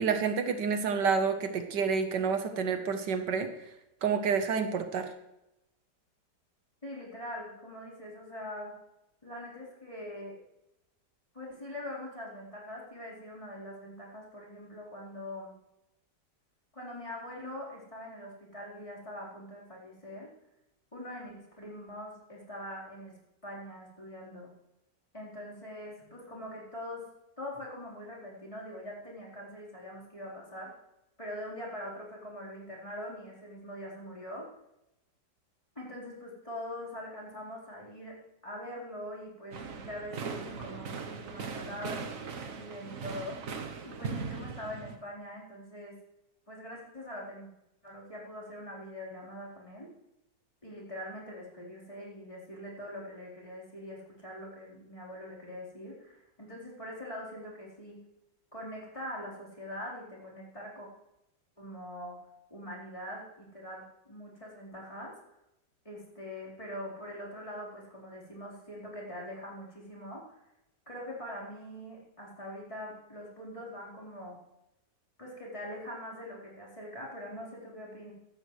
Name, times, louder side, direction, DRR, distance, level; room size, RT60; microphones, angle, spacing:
voice 1, 0.0-3.5 4.0-5.1, right 6 dB, 75° right, 7 dB, 1.6 m, -29 dB
voice 2, 6.8-8.8 9.2-10.4 11.3-15.5 16.7-20.3 20.9-24.5 25.1-27.0 27.4-30.7 31.2-34.5 35.8-43.4 43.8-45.9 46.5-47.5 47.8-49.9 50.6-58.0 58.5-60.9 61.6-62.2 62.5-65.1 65.8-70.2 70.9-74.4 75.2-78.1, left 1 dB, 15° left, -5 dB, 4.2 m, -43 dB
sound 1, 39.5-45.0, right 5 dB, 55° right, 1.3 m, -39 dB
16.0 x 12.5 x 3.2 m, 0.88 s
omnidirectional pair, 1.9 m